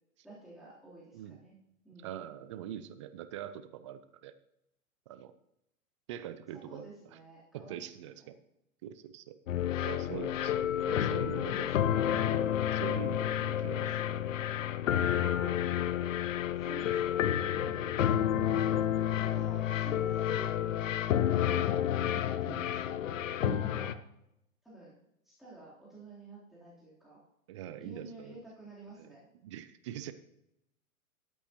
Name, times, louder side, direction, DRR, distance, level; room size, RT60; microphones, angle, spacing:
voice 1, 0.2-1.5 1.8-2.3 6.5-7.9 8.2-8.3 11.3-12.2 16.6-17.9 18.4-18.8 19.2-20.7 21.2-24.0 24.6-24.9 25.2-27.2 27.8-29.3, right 2 dB, ahead, -8 dB, 3.4 m, -50 dB
voice 2, 2.0-4.3 5.1-5.3 6.1-6.9 7.5-8.4 8.8-9.4 9.8-11.9 12.7-14.3 18.3-18.5 22.5-22.7 23.4-23.7 27.5-28.4 29.0-29.1 29.4-30.1, right 11 dB, 25° right, 12 dB, 0.4 m, -43 dB
sound 1, 9.5-23.9, left 10 dB, 65° left, 0.7 m, -30 dB
13.0 x 8.4 x 3.0 m, 0.81 s
figure-of-eight pair, 110°, 42 cm